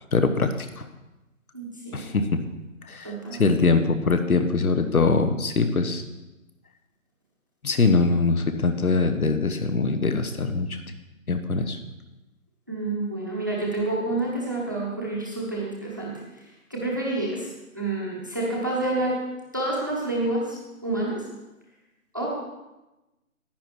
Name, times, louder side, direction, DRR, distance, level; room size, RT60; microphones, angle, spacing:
voice 1, 0.1-0.5 1.9-2.2 2.9-3.1 3.4-6.0 7.6-10.7 11.3-11.8, left 3 dB, 75° left, 8 dB, 1.3 m, -22 dB
voice 2, 1.5-2.0 3.0-3.4 12.7-16.1 16.7-19.2 19.5-20.6 20.8-21.2 22.1-22.4, right 2 dB, 15° right, -4 dB, 0.9 m, -28 dB
10.5 x 9.7 x 4.4 m, 1.0 s
figure-of-eight pair, 175°, 43 cm